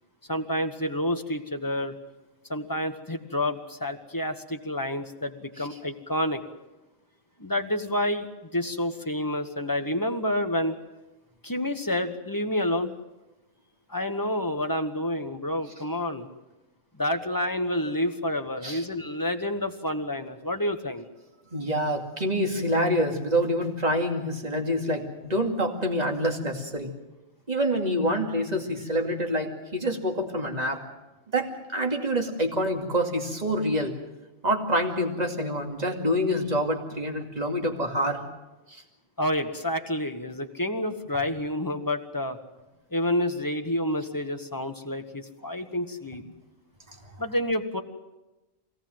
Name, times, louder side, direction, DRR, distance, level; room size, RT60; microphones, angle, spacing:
voice 1, 0.3-2.0 2.5-6.4 7.4-10.8 11.4-12.9 13.9-16.3 17.0-21.0 39.2-42.4 42.9-46.2 47.2-47.8, left 1 dB, 15° left, 6 dB, 1.2 m, -29 dB
voice 2, 21.5-26.9 27.5-30.8 31.3-33.9 34.4-38.2 38.7-38.8 46.9-47.0, equal, 30° right, 2 dB, 2.5 m, -26 dB
23.5 x 17.5 x 7.8 m, 1.1 s
omnidirectional pair, 1.4 m